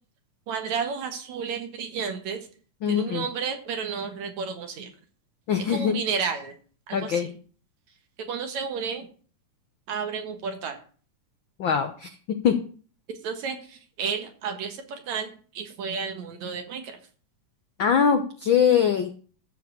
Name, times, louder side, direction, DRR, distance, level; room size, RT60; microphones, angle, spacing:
voice 1, 0.5-2.5 2.9-4.9 5.6-6.5 6.9-7.3 8.2-9.1 9.9-10.8 13.2-15.3 15.5-17.0, right 6 dB, 65° right, 6 dB, 2.7 m, -32 dB
voice 2, 2.8-3.2 5.5-5.9 6.9-7.3 11.6-12.1 12.4-12.5 17.8-19.1, left 7 dB, 90° left, 7 dB, 1.0 m, -22 dB
13.0 x 4.8 x 7.3 m, 0.42 s
omnidirectional pair, 3.5 m